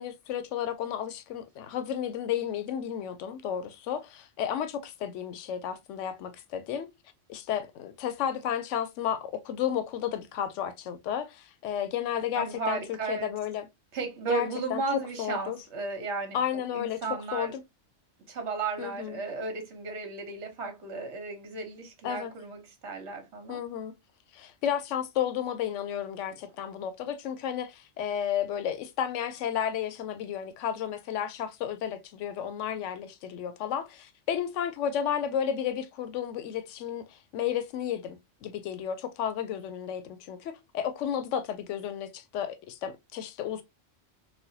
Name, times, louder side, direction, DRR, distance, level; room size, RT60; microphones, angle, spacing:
voice 1, 0.0-6.9 7.3-12.8 13.1-13.7 14.3-14.8 15.2-15.6 16.3-17.0 17.3-17.6 18.8-19.2 22.0-22.3 23.5-23.9 24.3-43.6, left 9 dB, 75° left, 0.9 m, -32 dB
voice 2, 12.3-13.3 13.9-16.4 16.7-17.5 18.3-23.6 26.3-26.4, right 4 dB, 65° right, 1.3 m, -34 dB
4.2 x 2.2 x 2.7 m
omnidirectional pair, 1.3 m